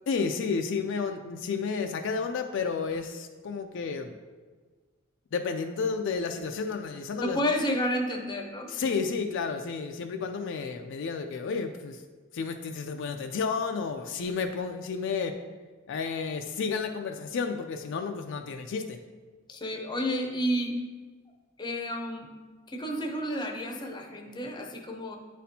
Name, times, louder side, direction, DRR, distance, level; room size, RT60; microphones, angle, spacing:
voice 1, 0.1-4.2 5.3-7.4 8.7-12.0 12.3-15.4 15.9-19.0, left 5 dB, 60° left, 5 dB, 0.4 m, -31 dB
voice 2, 7.2-8.9 19.5-20.8 21.6-22.3 22.7-25.2, equal, 20° left, 3 dB, 0.6 m, -31 dB
9.1 x 4.2 x 2.7 m, 1.4 s
head